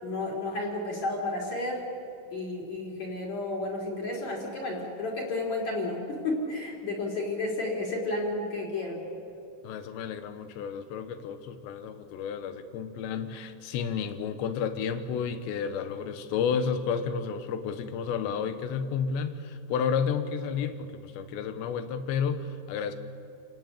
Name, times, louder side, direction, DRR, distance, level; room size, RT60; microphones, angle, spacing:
voice 1, 0.0-1.8 2.3-9.0, left 2 dB, 40° left, -2 dB, 5.1 m, -32 dB
voice 2, 9.6-23.0, left 6 dB, 75° left, 10 dB, 3.4 m, -31 dB
29.5 x 18.5 x 8.5 m, 2.5 s
omnidirectional pair, 5.3 m